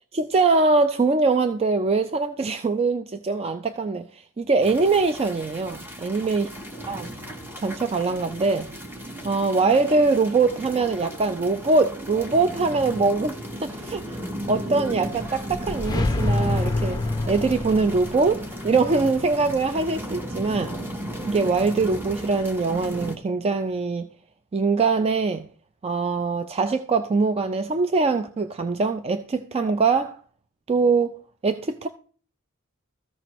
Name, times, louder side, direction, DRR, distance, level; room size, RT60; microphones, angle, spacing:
voice 1, 0.1-6.5 6.9-7.1 7.6-8.7 9.2-14.2 14.5-20.8 21.3-24.1 24.5-25.5 25.8-30.2 30.7-31.1 31.4-31.9, right 3 dB, 30° right, 0.4 m, -23 dB
sound 1, 4.6-23.2, equal, 10° right, 1.0 m, -36 dB
sound 2, 15.2-20.3, left 2 dB, 20° left, 0.6 m, -28 dB
14.0 x 6.0 x 3.0 m
head